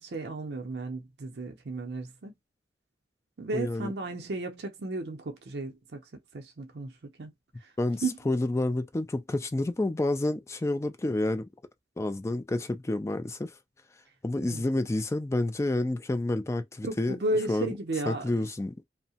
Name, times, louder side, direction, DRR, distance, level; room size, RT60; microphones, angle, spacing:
voice 1, 0.0-2.3 3.4-6.0 6.3-7.3 7.6-7.7 8.0-8.2 14.4-14.6 16.8-18.2, right 2 dB, 65° right, 0.6 m, -34 dB
voice 2, 3.5-3.9 7.8-11.5 12.0-13.5 14.2-17.2 17.5-17.7 18.1-18.8, left 2 dB, 15° left, 0.4 m, -29 dB
2.7 x 2.1 x 2.7 m
head